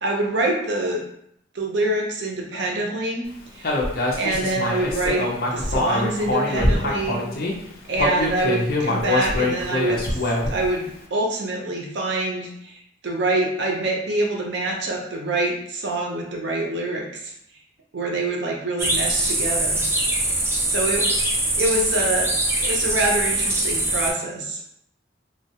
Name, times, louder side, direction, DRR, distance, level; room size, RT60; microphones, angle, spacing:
voice 1, 0.0-1.0 1.5-3.3 3.5-3.8 4.2-7.2 7.9-10.2 10.5-12.8 13.0-17.3 17.9-19.8 20.7-21.1 21.6-22.3 22.6-24.6, right 2 dB, 65° right, 0 dB, 0.5 m, -25 dB
Human voice, 3.6-7.5 7.9-10.7, left 1 dB, 50° left, 0.6 m, -24 dB
sound 1, 18.8-24.1, right 1 dB, 15° right, 0.3 m, -23 dB
3.1 x 2.1 x 2.8 m, 0.74 s
head